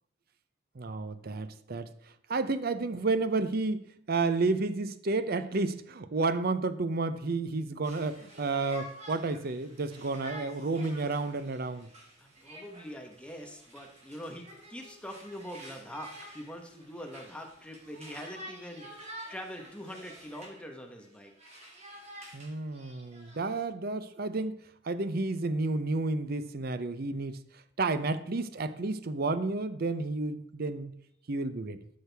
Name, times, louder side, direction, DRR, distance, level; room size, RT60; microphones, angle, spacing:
voice 1, 0.8-1.9 2.3-11.9 22.3-27.4 27.8-30.9 31.3-31.8, right 3 dB, 50° right, 12 dB, 0.6 m, -31 dB
Conversation, 7.8-20.6 21.0-23.6, right 1 dB, 35° right, 2.5 m, -49 dB
voice 2, 12.2-21.3, equal, 5° left, 2 dB, 1.0 m, -44 dB
12.5 x 6.4 x 3.4 m, 0.72 s
head